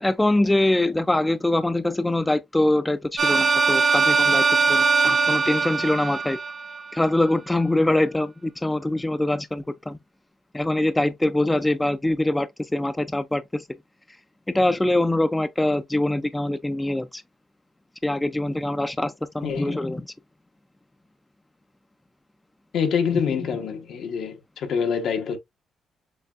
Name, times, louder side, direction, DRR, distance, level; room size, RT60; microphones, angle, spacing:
voice 1, 0.0-6.4 6.9-10.0 10.5-13.6 14.5-17.2 18.0-20.0, left 1 dB, 10° left, 0.3 m, -23 dB
sound 1, 3.2-7.1, right 5 dB, 45° right, 0.7 m, -21 dB
voice 2, 19.4-19.8 22.7-25.4, left 6 dB, 75° left, 0.9 m, -26 dB
6.5 x 2.2 x 2.4 m
cardioid pair, 100°, 0 cm